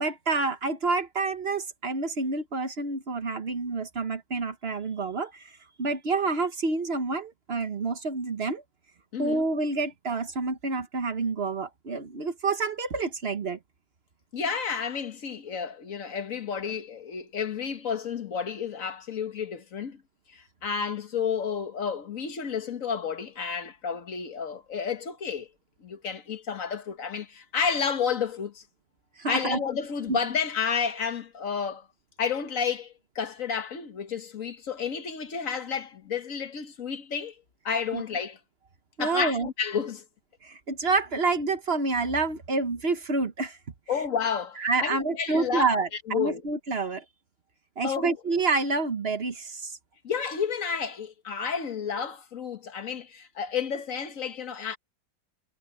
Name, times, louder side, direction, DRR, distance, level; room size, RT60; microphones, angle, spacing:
voice 1, 0.0-8.6 9.2-13.6 29.2-29.6 30.1-30.2 37.9-38.0 39.0-39.5 40.4-43.6 44.6-47.0 47.8-49.8, right 3 dB, 40° right, 1.1 m, -28 dB
voice 2, 9.1-9.4 14.3-20.0 20.3-25.5 25.8-28.6 29.3-31.9 32.2-37.3 37.6-38.4 39.0-40.0 43.9-45.7 46.1-46.4 47.8-48.1 50.0-54.8, left 6 dB, 45° left, 1.7 m, -31 dB
omnidirectional pair, 2.0 m